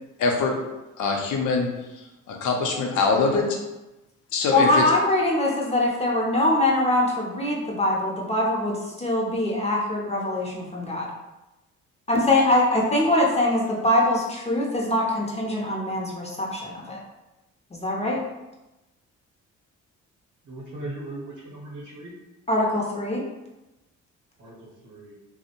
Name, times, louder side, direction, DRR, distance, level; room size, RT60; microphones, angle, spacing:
voice 1, 0.2-0.5 1.0-1.7 2.3-3.5 4.3-4.8, left 4 dB, 75° left, 1 dB, 0.6 m, -23 dB
voice 2, 4.5-11.1 12.1-17.0 17.7-18.2 22.5-23.2, left 1 dB, 20° left, -3 dB, 0.5 m, -23 dB
voice 3, 20.4-22.1 24.4-24.6 24.8-25.1, right 2 dB, 50° right, -5 dB, 0.8 m, -38 dB
2.5 x 2.0 x 2.8 m, 1.0 s
cardioid pair, 90°, 30 cm